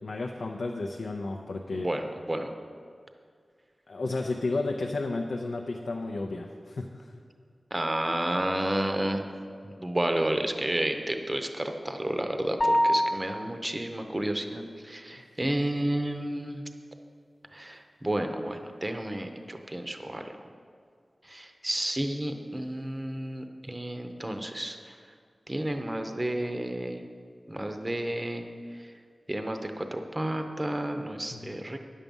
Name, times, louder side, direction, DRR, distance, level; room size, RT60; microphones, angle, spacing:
voice 1, 0.0-1.9 3.9-7.1 31.3-31.6, left 3 dB, 90° left, 2 dB, 0.6 m, -32 dB
voice 2, 1.8-2.5 7.7-9.2 9.6-16.6 17.5-20.3 21.2-25.0 25.5-27.0 27.5-28.4 28.8-28.9 29.3-31.8, right 1 dB, 20° right, 6 dB, 0.7 m, -31 dB
sound 1, 12.6-13.7, equal, 30° left, 0.7 m, -25 dB
9.8 x 7.3 x 5.3 m, 2.1 s
wide cardioid pair, 95°, 0 cm